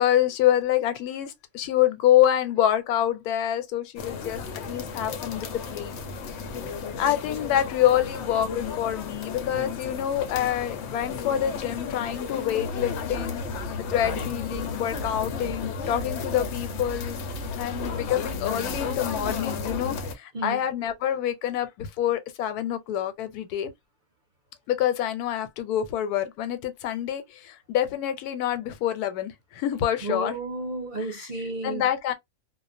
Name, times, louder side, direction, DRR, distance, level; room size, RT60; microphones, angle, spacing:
voice 1, 0.0-4.4 4.7-6.0 7.0-13.4 13.9-17.2 17.6-23.7 24.7-30.3 31.1-31.3 31.6-32.1, left 11 dB, 90° left, 1.1 m, -26 dB
sound 1, 4.0-20.1, left 4 dB, 65° left, 0.7 m, -33 dB
voice 2, 30.0-31.9, right 2 dB, 50° right, 0.6 m, -32 dB
2.4 x 2.1 x 2.5 m
omnidirectional pair, 1.6 m